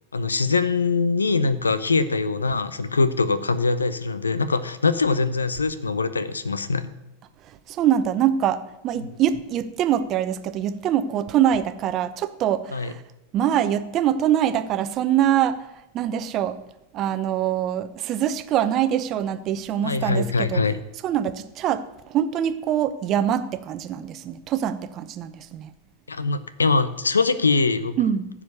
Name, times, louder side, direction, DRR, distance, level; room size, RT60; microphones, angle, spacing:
voice 1, 0.1-6.9 12.7-12.9 19.8-20.8 26.1-28.0, left 4 dB, 85° left, 15 dB, 0.7 m, -23 dB
voice 2, 7.4-13.0 13.3-15.7 15.9-16.6 16.9-20.6 21.0-25.7 28.0-28.3, right 10 dB, 40° right, 12 dB, 0.8 m, -24 dB
15.0 x 4.9 x 6.7 m, 0.91 s
figure-of-eight pair, 90°, 0 cm